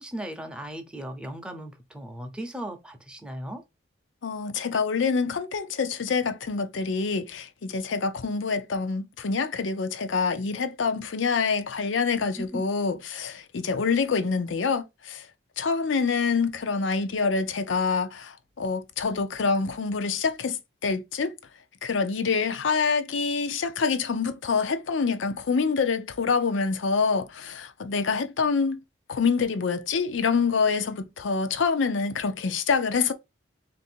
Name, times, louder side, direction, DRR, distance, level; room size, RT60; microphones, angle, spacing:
voice 1, 0.0-3.6 12.4-12.6, right 1 dB, 5° right, 0.6 m, -37 dB
voice 2, 4.2-15.3 15.6-21.4 21.8-28.8 29.1-33.1, left 5 dB, 80° left, 0.5 m, -26 dB
3.6 x 2.6 x 4.3 m
head